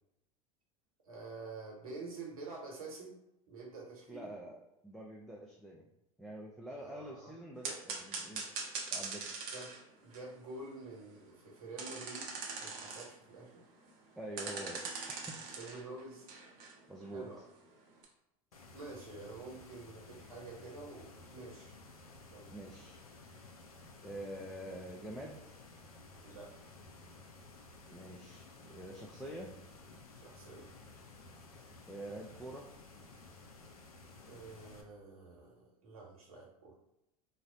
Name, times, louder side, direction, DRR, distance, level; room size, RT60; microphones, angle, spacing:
voice 1, 1.0-3.2 3.5-4.3 6.7-7.3 9.5-9.7 10.0-13.5 15.6-16.3 17.0-17.4 18.0-18.1 18.7-21.7 22.2-22.5 26.2-26.6 30.2-30.7 34.2-36.8, right 3 dB, 75° right, -2 dB, 1.0 m, -48 dB
voice 2, 4.1-4.6 4.8-5.9 6.2-8.4 8.9-9.4 14.2-15.4 16.9-17.2 22.5-23.0 24.0-25.6 27.9-29.5 31.9-32.7, right 1 dB, ahead, -2 dB, 0.4 m, -46 dB
sound 1, 7.6-9.8 10.1-11.3 11.8-13.1 13.5-13.6 13.9-14.0 14.4-16.8 17.7-17.8 18.0-18.1, right 4 dB, 50° right, 0.7 m, -42 dB
sound 2, 18.5-34.8, left 3 dB, 90° left, 0.4 m, -55 dB
2.6 x 2.0 x 3.7 m, 0.85 s
figure-of-eight pair, 80°, 18 cm